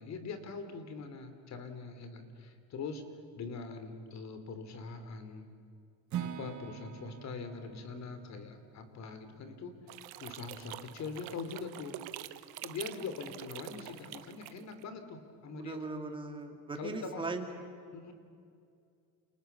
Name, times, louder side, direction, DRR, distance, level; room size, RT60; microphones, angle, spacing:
voice 1, 0.0-3.0 3.4-5.5 6.2-9.7 10.2-12.0 12.6-15.9 16.8-17.3 17.9-18.1, left 4 dB, 45° left, 9 dB, 3.1 m, -43 dB
Acoustic guitar / Strum, 6.1-10.1, right 9 dB, 45° right, 1.4 m, -44 dB
sound 1, 9.9-14.8, right 15 dB, 70° right, 1.1 m, -46 dB
voice 2, 15.6-17.5, right 3 dB, 15° right, 4 dB, 2.6 m, -39 dB
29.0 x 29.0 x 6.9 m, 2.4 s
cardioid pair, 170°, 39 cm